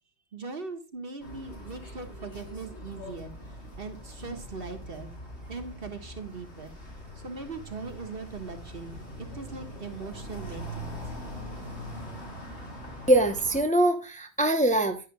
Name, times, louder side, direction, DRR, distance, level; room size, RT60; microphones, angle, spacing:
voice 1, 0.3-5.1 5.5-6.7 7.2-11.0, right 4 dB, 60° right, 1.8 m, -40 dB
sound 1, 1.2-13.6, equal, 85° left, 4.8 m, -42 dB
voice 2, 13.1-15.1, right 1 dB, 5° left, 1.0 m, -23 dB
11.0 x 10.5 x 2.4 m
omnidirectional pair, 1.1 m